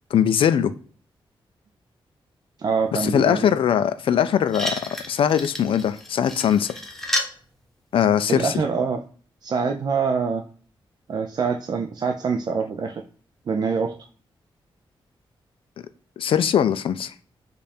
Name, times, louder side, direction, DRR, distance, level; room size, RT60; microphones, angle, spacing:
voice 1, 0.1-0.7 3.0-4.8 5.1-6.7 7.9-8.5 16.2-17.1, left 9 dB, 75° left, 0.4 m, -21 dB
voice 2, 2.6-3.5 8.3-9.0 9.4-10.4 11.1-13.0 13.5-14.0, right 5 dB, 50° right, 0.4 m, -25 dB
sound 1, 4.1-4.2 4.5-7.4 8.4-8.5, left 1 dB, 5° left, 0.6 m, -31 dB
5.2 x 2.4 x 4.2 m
wide cardioid pair, 135°, 9 cm